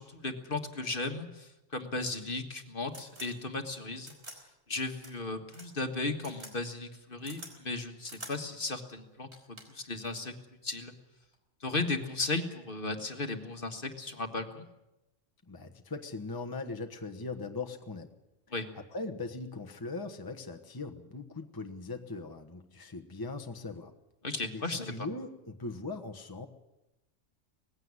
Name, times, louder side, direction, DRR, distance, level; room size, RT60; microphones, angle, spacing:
voice 1, 0.0-4.1 4.7-10.3 10.6-10.9 11.6-14.6 18.5-18.7 24.2-24.9, left 3 dB, 45° left, 6 dB, 1.8 m, -35 dB
sound 1, 2.2-2.3 2.9-3.3 4.0-4.4 5.0-5.1 5.5-5.7 6.2-6.5 6.8-7.5 8.0-8.3 8.9-9.0 9.3-9.8 11.0-11.3, right 1 dB, 60° right, 4.2 m, -47 dB
voice 2, 15.5-18.1 18.7-23.9 24.5-26.5, left 3 dB, 20° left, 5 dB, 1.2 m, -40 dB
19.5 x 16.0 x 9.7 m, 0.95 s
omnidirectional pair, 1.3 m